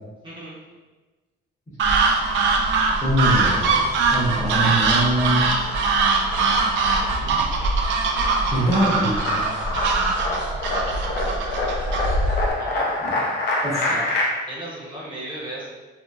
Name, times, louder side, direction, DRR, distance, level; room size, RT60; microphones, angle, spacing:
voice 1, 0.2-0.6 11.6-12.2 12.6-12.9 13.8-14.1 14.5-15.7, right 1 dB, 25° right, -8 dB, 0.6 m, -35 dB
sound 1, 1.8-12.5, right 3 dB, 75° right, 0.4 m, -22 dB
voice 2, 3.0-3.8 4.1-5.5 8.5-9.7 13.1-13.2 13.6-14.2, equal, 15° left, -7 dB, 0.7 m, -23 dB
sound 2, 4.3-5.1 5.5-14.2, left 2 dB, 65° left, 0.5 m, -27 dB
2.8 x 2.6 x 2.3 m, 1.2 s
cardioid pair, 160°, 19 cm